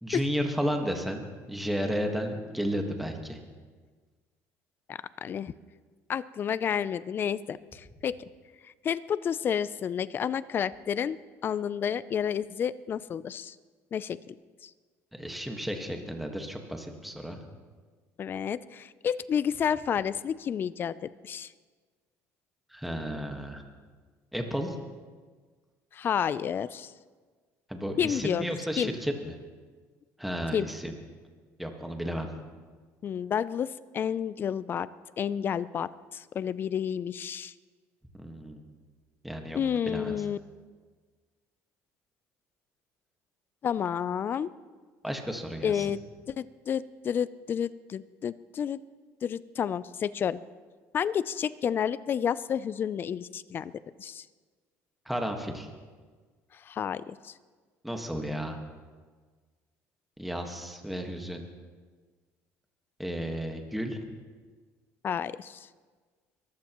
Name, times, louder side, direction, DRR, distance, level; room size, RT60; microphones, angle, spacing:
voice 1, 0.0-3.4 15.1-17.4 22.7-23.6 24.3-24.8 27.7-29.3 30.2-30.9 31.6-32.3 38.2-38.6 39.2-39.6 39.8-40.2 45.0-45.9 55.0-55.7 57.8-58.6 60.2-61.4 63.0-64.0, equal, ahead, 3 dB, 1.5 m, -33 dB
voice 2, 4.9-5.5 6.1-8.2 8.8-13.6 13.9-14.3 14.6-14.7 18.2-21.5 25.9-26.9 28.0-28.5 28.8-28.9 30.5-30.7 33.0-34.9 35.2-37.5 39.5-40.4 43.6-44.5 45.6-46.0 46.3-48.8 49.2-50.4 50.9-53.7 54.0-54.2 56.5-57.3 65.0-65.7, left 8 dB, 35° left, 17 dB, 0.4 m, -30 dB
23.0 x 15.0 x 3.0 m, 1.5 s
cardioid pair, 130°, 6 cm